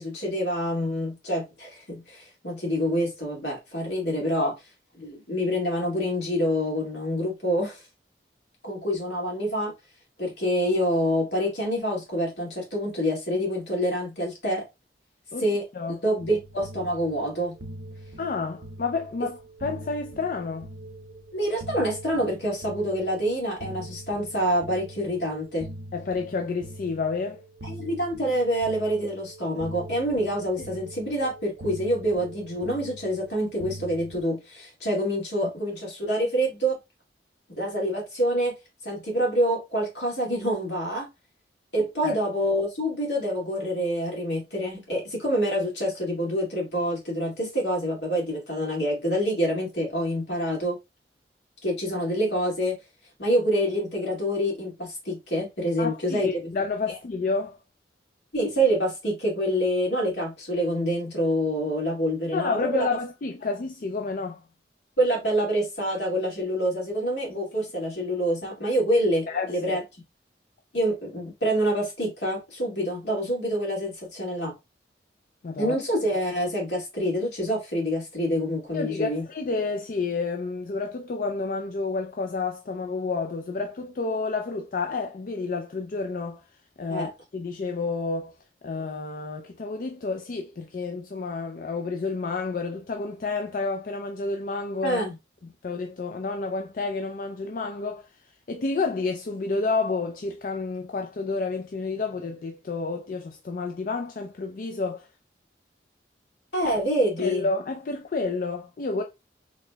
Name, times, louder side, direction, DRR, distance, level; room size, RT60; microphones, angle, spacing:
voice 1, 0.0-4.5 5.0-7.8 8.6-9.7 10.2-14.6 15.4-15.6 16.0-17.6 21.3-25.7 27.6-36.8 37.6-38.5 38.8-41.1 41.7-50.8 51.6-52.8 53.2-56.5 58.3-62.9 65.0-69.8 70.7-74.5 75.6-79.2 86.9-87.1 94.8-95.1 106.5-107.5, equal, 75° left, 2.1 m, -26 dB
sound 1, 16.2-34.2, right 1 dB, 65° right, 0.6 m, -43 dB
voice 2, 18.2-20.7 25.9-27.4 42.0-42.2 55.8-57.6 62.3-64.4 69.3-69.8 75.4-75.8 78.7-86.4 86.8-87.1 87.3-88.3 88.6-95.0 95.6-98.1 98.5-105.1 107.2-109.0, left 4 dB, 50° left, 0.4 m, -30 dB
4.1 x 3.1 x 2.2 m
head